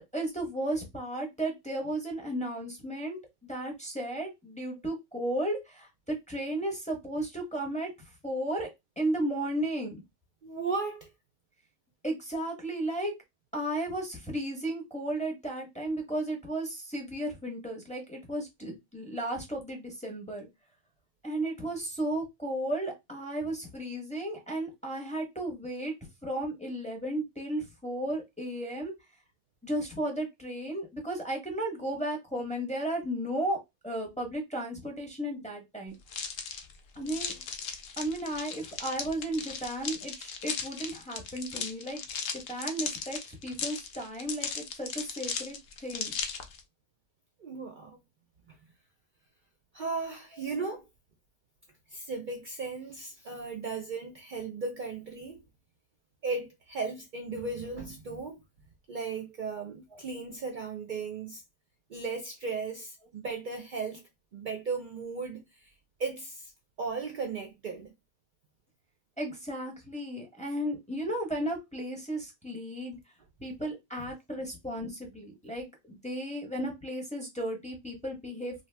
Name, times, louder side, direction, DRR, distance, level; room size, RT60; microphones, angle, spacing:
voice 1, 0.1-7.9 8.2-8.7 9.0-10.0 12.0-13.1 13.5-20.5 21.2-25.9 26.2-28.9 29.6-35.9 37.0-37.4 38.0-42.0 42.3-45.6 45.8-46.1 59.9-60.0 69.2-72.9 73.4-78.7, right 1 dB, 5° left, 0.7 m, -34 dB
voice 2, 10.4-11.1 37.0-37.2 47.4-48.0 48.5-48.6 49.7-50.8 51.9-55.4 56.2-58.4 58.9-61.4 61.9-64.0 64.3-65.7 66.0-66.5 66.8-67.9, right 4 dB, 55° right, 0.6 m, -36 dB
sound 1, 36.1-46.6, left 6 dB, 65° left, 0.7 m, -37 dB
2.8 x 2.1 x 3.2 m
omnidirectional pair, 1.2 m